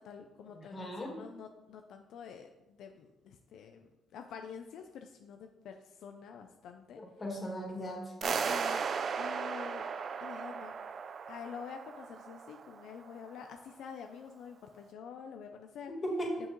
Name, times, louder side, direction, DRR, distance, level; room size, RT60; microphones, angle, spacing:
voice 1, 0.0-7.0 8.2-8.9 9.2-9.8 10.2-10.7 11.3-15.9 16.4-16.5, left 7 dB, 80° left, 5 dB, 0.5 m, -47 dB
voice 2, 0.7-1.2 7.2-8.1 15.9-16.5, equal, 35° left, -1 dB, 2.4 m, -37 dB
sound 1, 8.2-13.2, right 6 dB, 50° right, 0.4 m, -36 dB
7.1 x 6.2 x 3.1 m, 0.99 s
cardioid pair, 90°, 0 cm